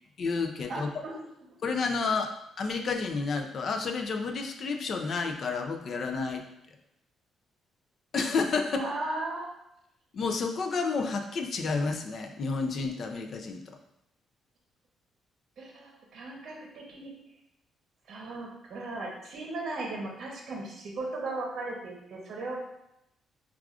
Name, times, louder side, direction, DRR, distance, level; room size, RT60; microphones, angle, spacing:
voice 1, 0.2-1.0 1.6-2.3 2.6-6.4 8.1-8.8 10.1-13.6, left 4 dB, 45° left, 5 dB, 0.4 m, -30 dB
voice 2, 0.7-1.1 8.8-9.5 15.6-17.1 18.1-22.6, right 2 dB, 55° right, -2 dB, 0.8 m, -37 dB
4.7 x 2.4 x 2.4 m, 0.80 s
cardioid pair, 140°, 0 cm